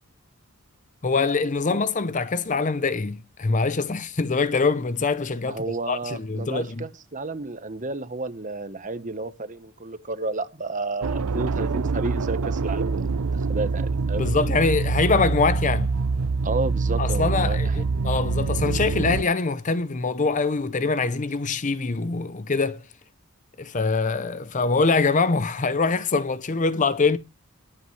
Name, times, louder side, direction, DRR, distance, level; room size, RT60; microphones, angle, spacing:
voice 1, 1.0-6.8 14.1-15.9 17.0-22.8 23.6-27.2, left 4 dB, 35° left, 0.6 m, -24 dB
voice 2, 5.5-14.2 16.4-17.8, right 3 dB, 35° right, 1.1 m, -31 dB
sound 1, 11.0-19.2, right 4 dB, 80° right, 0.5 m, -25 dB
22.0 x 8.2 x 3.2 m
head